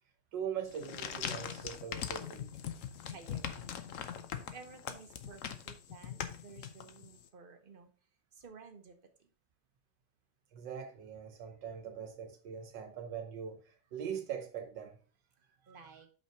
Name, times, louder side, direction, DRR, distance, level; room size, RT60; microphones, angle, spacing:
voice 1, 0.3-2.7 10.5-15.0 15.7-15.8, right 8 dB, 75° right, 1.5 m, -42 dB
sound 1, 0.7-7.2, left 9 dB, 60° left, 0.8 m, -41 dB
voice 2, 3.0-3.8 4.5-7.9 8.4-8.9 15.7-16.1, right 5 dB, 40° right, 0.8 m, -53 dB
5.7 x 5.5 x 4.5 m
omnidirectional pair, 2.0 m